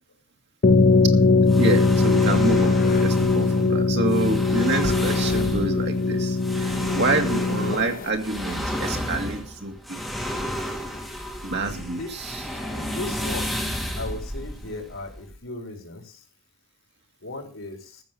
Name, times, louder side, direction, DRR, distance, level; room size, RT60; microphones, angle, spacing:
sound 1, 0.6-8.1, left 3 dB, 45° left, 0.6 m, -20 dB
sound 2, 1.5-15.4, equal, ahead, 3.2 m, -32 dB
voice 1, 1.6-9.7 11.4-12.4, right 2 dB, 55° right, 4 dB, 2.3 m, -27 dB
voice 2, 11.5-12.1 12.7-13.6 14.0-16.2 17.2-18.0, left 2 dB, 75° left, 3 dB, 4.0 m, -37 dB
14.0 x 7.1 x 6.9 m, 0.38 s
head